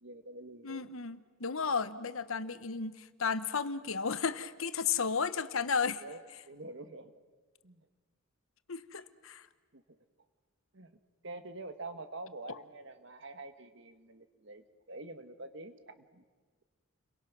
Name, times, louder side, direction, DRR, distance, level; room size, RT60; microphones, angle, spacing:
voice 1, 0.0-0.9 4.9-5.0 6.0-7.1 7.6-7.9 9.7-9.8 10.7-11.0 11.2-16.2, right 2 dB, 60° right, 9 dB, 1.5 m, -46 dB
voice 2, 0.6-6.0 8.7-9.4, left 5 dB, 75° left, 13 dB, 1.0 m, -33 dB
30.0 x 23.0 x 6.1 m, 1.5 s
head